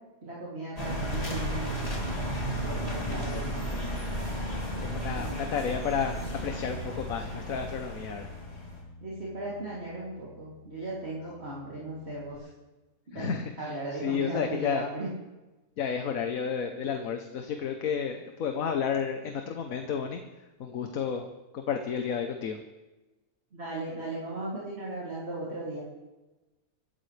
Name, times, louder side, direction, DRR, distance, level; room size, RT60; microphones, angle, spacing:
voice 1, 0.2-2.2 2.6-3.7 5.1-5.5 9.0-12.5 13.1-13.3 13.6-15.1 23.5-25.8, right 2 dB, 45° right, -8 dB, 3.2 m, -37 dB
sound 1, 0.8-8.8, equal, 25° left, 3.3 m, -34 dB
voice 2, 3.1-3.4 4.8-8.3 13.1-14.8 15.8-20.2 20.6-21.3 21.5-22.6, left 7 dB, 70° left, 5 dB, 1.4 m, -32 dB
Bass guitar, 6.1-12.4, left 2 dB, 50° left, 2.4 m, -47 dB
25.0 x 12.5 x 3.3 m, 1.1 s
omnidirectional pair, 1.5 m